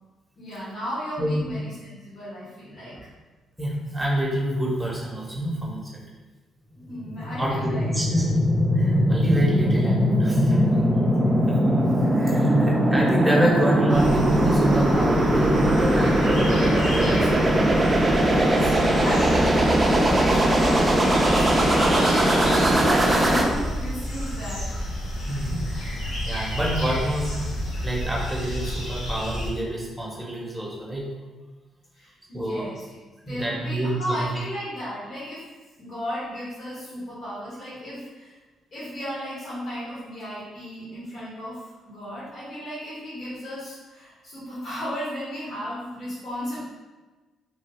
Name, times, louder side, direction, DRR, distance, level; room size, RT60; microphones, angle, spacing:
voice 1, 0.4-3.1 6.9-8.2 18.2-18.7 19.0-22.1 22.5-25.0 31.9-33.0 33.3-35.5 35.8-38.3 38.7-46.6, equal, 55° left, -12 dB, 1.4 m, -34 dB
voice 2, 1.2-1.5 3.6-6.0 7.4-8.3 8.7-10.8 11.5-11.6 12.0-17.3 22.1-22.2 25.3-27.5 27.8-31.1 32.3-32.7 33.3-34.4, equal, 5° right, -4 dB, 0.9 m, -27 dB
sound 1, 6.9-23.4, right 1 dB, 20° right, 0.5 m, -20 dB
sound 2, 13.9-29.5, equal, 90° left, 0.8 m, -30 dB
3.1 x 2.3 x 3.4 m, 1.3 s
cardioid pair, 90°, 0 cm